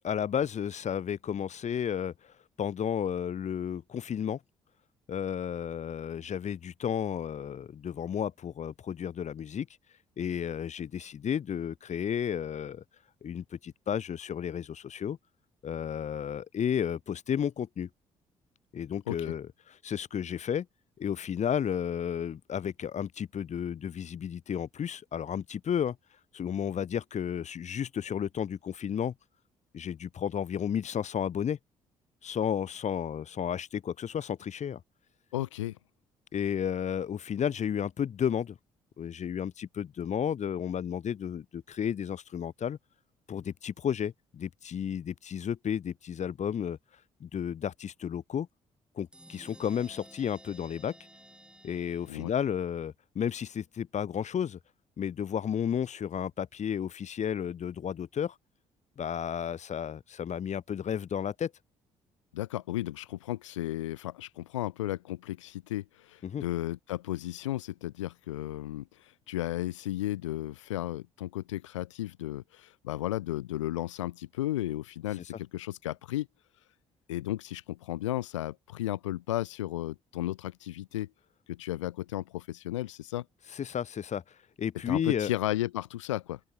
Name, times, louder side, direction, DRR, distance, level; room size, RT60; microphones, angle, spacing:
voice 1, 0.0-2.1 2.6-4.4 5.1-9.7 10.2-12.8 13.2-15.2 15.6-17.9 18.7-19.5 19.8-20.7 21.0-26.0 26.3-29.1 29.7-31.6 32.2-34.8 36.3-38.6 39.0-42.8 43.3-46.8 47.2-48.5 49.0-51.0 51.6-54.6 55.0-58.3 59.0-61.5 66.2-66.4 83.5-84.2 84.6-85.3, left 8 dB, 50° left, 3.0 m, -32 dB
voice 2, 35.3-35.8 52.1-52.3 62.3-76.3 77.1-81.1 81.5-83.2 84.9-86.4, left 15 dB, 80° left, 1.1 m, -34 dB
sound 1, 49.1-52.7, right 1 dB, 5° right, 4.7 m, -54 dB
open air
figure-of-eight pair, 45°, 16 cm